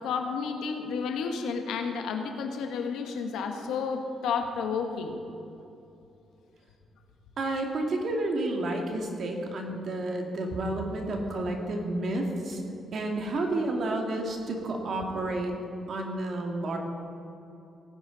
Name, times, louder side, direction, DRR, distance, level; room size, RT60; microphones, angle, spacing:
voice 1, 0.0-5.1, left 5 dB, 80° left, 5 dB, 1.3 m, -31 dB
voice 2, 7.4-15.5 15.9-16.8, right 2 dB, 60° right, 2 dB, 2.2 m, -30 dB
18.0 x 10.5 x 4.0 m, 2.8 s
supercardioid pair, 60°, 0 cm